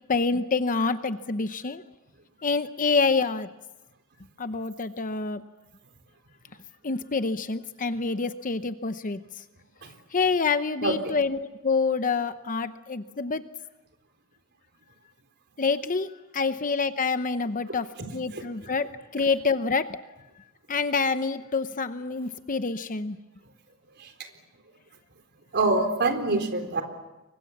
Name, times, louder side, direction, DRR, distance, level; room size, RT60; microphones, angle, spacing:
voice 1, 0.1-1.8 2.4-3.5 4.4-5.4 6.8-9.2 10.1-13.4 15.6-17.9 18.1-19.9 20.7-23.2, left 4 dB, 40° left, 10 dB, 0.8 m, -27 dB
voice 2, 18.3-18.7 24.0-24.1 25.5-26.8, right 2 dB, 50° right, 6 dB, 4.0 m, -25 dB
30.0 x 24.0 x 7.3 m, 1.1 s
head